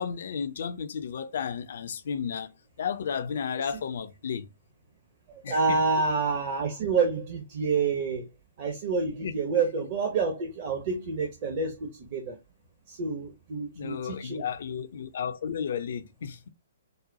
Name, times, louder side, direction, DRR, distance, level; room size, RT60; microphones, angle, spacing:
voice 1, 0.0-2.5 2.8-4.5 5.4-5.8 9.2-9.8 13.8-16.5, left 7 dB, 50° left, 0.4 m, -33 dB
voice 2, 5.3-8.3 8.6-12.3 12.9-14.4, right 4 dB, 35° right, 0.8 m, -28 dB
4.1 x 2.1 x 2.6 m
figure-of-eight pair, 120°, 0 cm